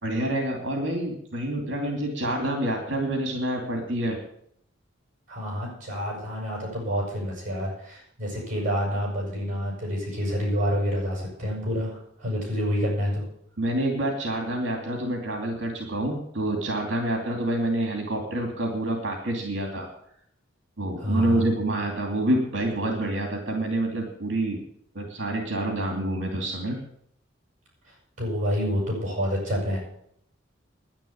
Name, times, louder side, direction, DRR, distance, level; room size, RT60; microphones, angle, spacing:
voice 1, 0.0-4.2 13.6-19.9 20.8-24.6 24.9-26.8, right 1 dB, 65° right, 2 dB, 2.5 m, -27 dB
voice 2, 5.3-13.3 21.0-21.4 28.2-29.8, equal, 40° right, -2 dB, 7.6 m, -28 dB
10.5 x 10.5 x 8.7 m, 0.70 s
head